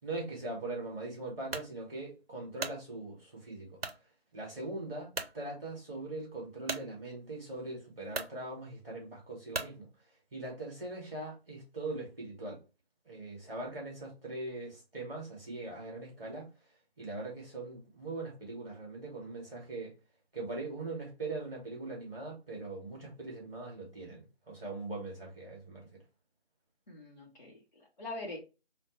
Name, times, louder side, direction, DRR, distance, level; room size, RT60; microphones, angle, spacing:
voice 1, 0.0-4.1 4.3-12.6 13.0-19.9 20.3-25.9, right 2 dB, 5° right, 1.4 m, -41 dB
sound 1, 1.5-1.7 2.3-2.8 3.8-4.0 4.6-4.7 5.1-5.4 6.7-6.9 7.7-7.8 8.1-8.4 9.5-9.8, right 4 dB, 70° right, 0.6 m, -37 dB
voice 2, 26.9-28.4, left 2 dB, 45° left, 0.8 m, -43 dB
3.8 x 2.1 x 3.0 m
figure-of-eight pair, 165°, 31 cm